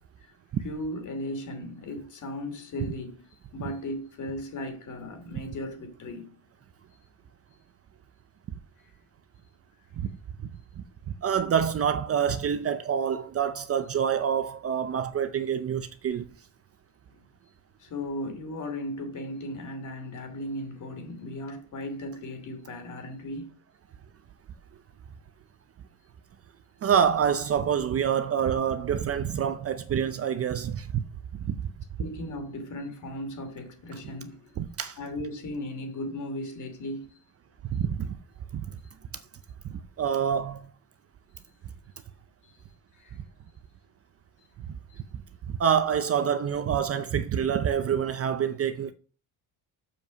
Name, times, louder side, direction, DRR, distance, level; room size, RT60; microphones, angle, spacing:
voice 1, 0.6-6.3 6.9-7.0 7.5-7.6 8.8-8.9 17.1-17.2 17.8-23.5 32.0-34.4 35.0-37.2 42.4-42.6 42.9-43.2 44.9-45.0, left 1 dB, 45° left, 2.8 m, -36 dB
voice 2, 11.1-16.3 26.8-31.0 31.3-31.6 34.6-35.0 37.6-38.2 38.5-38.7 39.7-40.7 45.5-48.9, right 8 dB, 35° right, 0.6 m, -27 dB
7.1 x 5.4 x 7.1 m
cardioid pair, 125°, 42 cm